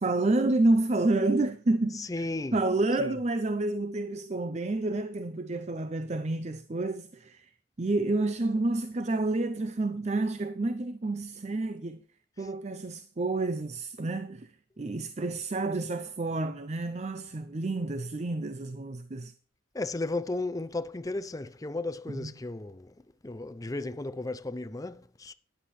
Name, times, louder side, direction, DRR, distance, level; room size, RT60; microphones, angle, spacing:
voice 1, 0.0-7.5 7.8-12.0 12.4-14.5 14.8-19.3 22.1-22.3, right 2 dB, 35° right, 0.5 m, -29 dB
voice 2, 1.9-2.6 3.0-3.2 12.4-12.5 19.7-22.9 23.2-25.3, left 2 dB, 15° left, 0.5 m, -34 dB
13.0 x 10.0 x 3.2 m
head